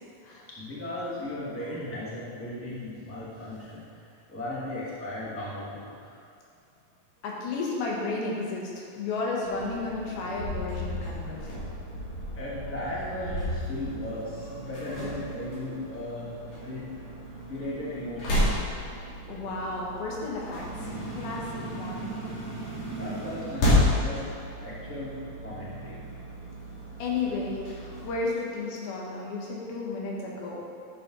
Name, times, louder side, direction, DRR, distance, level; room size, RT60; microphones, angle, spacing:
voice 1, 0.5-3.9 4.3-6.1 12.3-16.3 16.6-16.8 17.5-18.9 23.0-24.2 24.6-25.2 25.4-26.1, left 1 dB, 5° left, -9 dB, 1.6 m, -36 dB
voice 2, 7.2-11.5 19.3-22.1 27.0-30.6, left 3 dB, 85° left, -3 dB, 3.4 m, -33 dB
sound 1, 9.4-28.1, left 1 dB, 65° left, 4.5 m, -32 dB
12.5 x 7.0 x 4.0 m, 2.4 s
omnidirectional pair, 4.2 m